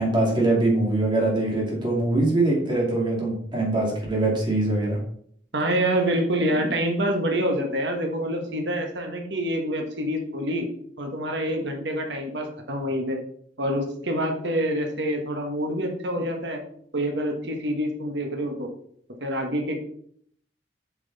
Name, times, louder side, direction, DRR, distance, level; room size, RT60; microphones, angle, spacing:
voice 1, 0.0-5.0, right 2 dB, 25° right, -2 dB, 2.4 m, -23 dB
voice 2, 5.5-10.7 11.0-13.2 13.6-16.6 16.9-18.7 19.2-19.8, equal, 65° right, 3 dB, 1.4 m, -26 dB
7.8 x 6.0 x 4.1 m, 0.64 s
head